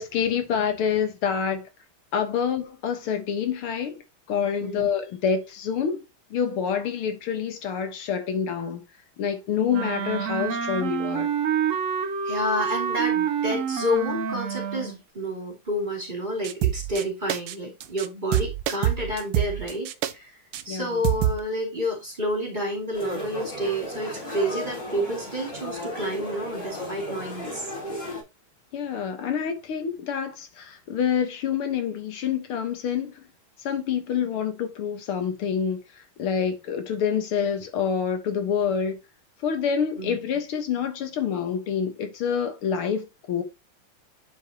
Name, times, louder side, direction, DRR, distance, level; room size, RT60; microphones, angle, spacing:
voice 1, 0.0-1.7 2.1-4.0 4.3-6.0 6.3-8.8 9.2-11.3 20.7-21.0 28.7-33.2 33.6-35.8 36.2-39.0 39.4-43.4, left 7 dB, 80° left, 2.1 m, -27 dB
Wind instrument woodwind instrument, 9.7-15.0, right 7 dB, 60° right, 0.8 m, -27 dB
voice 2, 12.2-20.3 20.6-27.7 40.0-40.2, equal, 20° right, 2.6 m, -29 dB
sound 1, 16.4-17.0 17.3-17.6 17.8-18.1 18.3-20.1 20.5-20.6 21.0-21.4, right 12 dB, 85° right, 1.5 m, -25 dB
sound 2, 22.9-28.2, equal, 55° left, 4.3 m, -35 dB
10.5 x 4.9 x 2.8 m
omnidirectional pair, 2.3 m